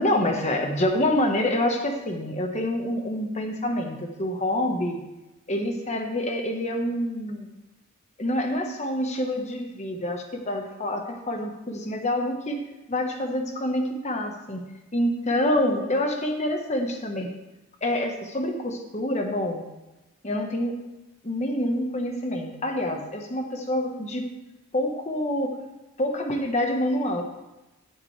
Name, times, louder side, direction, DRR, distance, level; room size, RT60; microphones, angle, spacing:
voice 1, 0.0-5.0 5.5-7.5 8.2-12.6 12.9-14.6 14.9-17.3 17.8-19.6 20.2-20.8 21.2-24.3 24.7-25.5 26.0-27.2, left 1 dB, 35° left, 3 dB, 1.3 m, -27 dB
13.5 x 7.3 x 3.3 m, 1.0 s
head